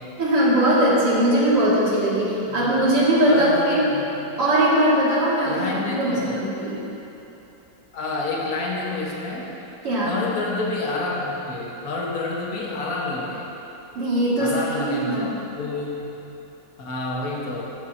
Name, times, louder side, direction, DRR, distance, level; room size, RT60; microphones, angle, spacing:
voice 1, 0.2-3.9 4.4-5.7 6.0-6.8 9.8-10.1 14.0-15.2, right 1 dB, 80° right, -8 dB, 3.7 m, -20 dB
voice 2, 2.5-2.9 3.3-4.1 5.4-6.4 7.9-9.5 10.0-13.5 14.4-16.2 16.8-17.6, left 2 dB, 45° left, -4 dB, 1.9 m, -28 dB
15.0 x 12.5 x 3.0 m, 3.0 s
omnidirectional pair, 2.4 m